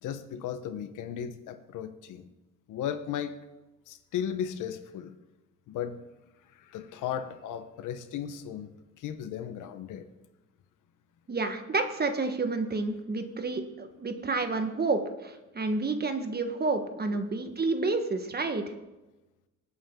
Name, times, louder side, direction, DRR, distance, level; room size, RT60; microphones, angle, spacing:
voice 1, 0.0-2.3 2.7-3.3 3.9-5.1 5.7-6.0 6.5-8.7 9.0-10.1 17.5-17.6, left 9 dB, 85° left, 10 dB, 1.1 m, -36 dB
voice 2, 11.3-18.6, right 3 dB, 30° right, 7 dB, 1.4 m, -30 dB
19.5 x 8.7 x 3.8 m, 1.1 s
cardioid pair, 90°, 30 cm